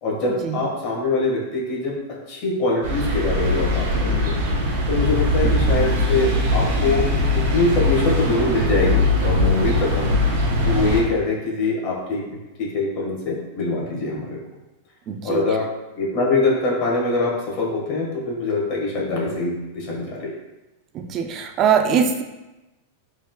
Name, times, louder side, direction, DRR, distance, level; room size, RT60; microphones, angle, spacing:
voice 1, 0.0-1.9 2.3-4.3 4.9-7.1 7.3-10.1 10.6-12.3 12.6-14.4 15.2-15.7 16.0-20.3, left 3 dB, 45° left, -3 dB, 1.4 m, -23 dB
sound 1, 2.8-11.0, left 1 dB, 60° right, 1.4 m, -21 dB
voice 2, 15.1-15.4 20.9-22.2, right 7 dB, 35° right, 6 dB, 0.4 m, -22 dB
5.3 x 3.7 x 2.2 m, 1.0 s
supercardioid pair, 140°, 0 cm